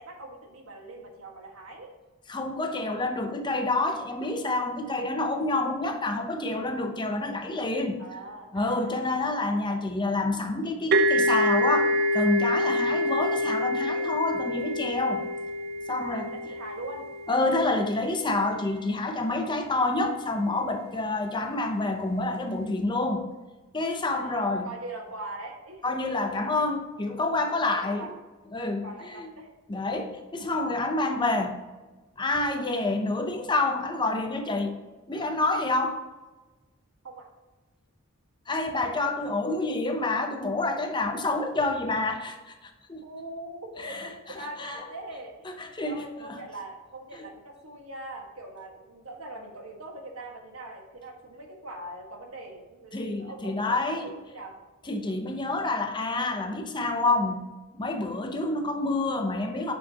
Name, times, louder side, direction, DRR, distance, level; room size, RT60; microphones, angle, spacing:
voice 1, 0.0-1.9 8.0-9.7 12.7-13.0 15.9-17.1 24.1-26.6 27.6-28.1 28.8-29.5 37.0-37.3 43.0-54.5, right 2 dB, 75° right, 1 dB, 1.6 m, -42 dB
voice 2, 2.3-8.0 8.5-15.3 15.9-16.3 17.3-23.3 23.7-24.7 25.8-28.1 28.5-29.3 29.7-31.6 32.2-34.8 35.1-36.0 38.5-43.0 43.8-44.8 45.6-46.1 47.1-47.3 52.9-54.2 54.9-59.7, left 2 dB, 20° left, 5 dB, 0.7 m, -28 dB
sound 1, 10.9-18.4, left 1 dB, 45° right, 0.4 m, -27 dB
8.8 x 6.5 x 2.9 m, 1.2 s
head